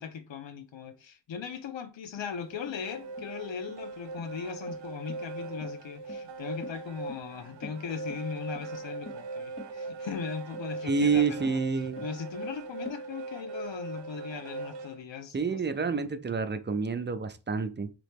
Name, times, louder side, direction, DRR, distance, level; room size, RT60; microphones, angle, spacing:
voice 1, 0.0-11.6 12.0-15.6, left 6 dB, 90° left, 0.7 m, -39 dB
sound 1, 2.2-13.0, left 3 dB, 30° left, 0.6 m, -48 dB
sound 2, 2.4-15.0, right 3 dB, 80° right, 0.5 m, -40 dB
voice 2, 10.8-12.0 15.3-17.9, right 5 dB, 25° right, 0.4 m, -28 dB
3.7 x 3.0 x 3.5 m
wide cardioid pair, 70°, 44 cm